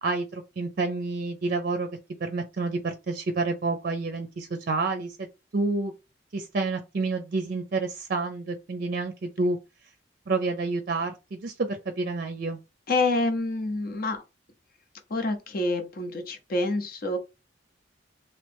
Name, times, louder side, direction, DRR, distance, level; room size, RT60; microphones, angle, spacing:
voice 1, 0.0-1.9 2.2-5.3 5.5-5.9 6.3-9.6 10.3-12.6, right 3 dB, 50° right, 0.5 m, -29 dB
voice 2, 12.9-14.2 15.1-17.2, left 2 dB, 50° left, 0.8 m, -27 dB
3.1 x 2.9 x 3.4 m
head